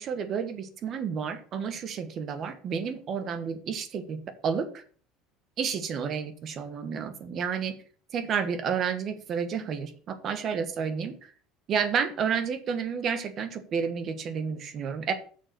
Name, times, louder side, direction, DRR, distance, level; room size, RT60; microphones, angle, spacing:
voice 1, 0.0-4.8 5.6-7.8 8.1-11.3 11.7-15.1, right 6 dB, 35° right, 9 dB, 1.3 m, -31 dB
8.6 x 6.7 x 6.8 m, 0.43 s
cardioid pair, 165°, 0 cm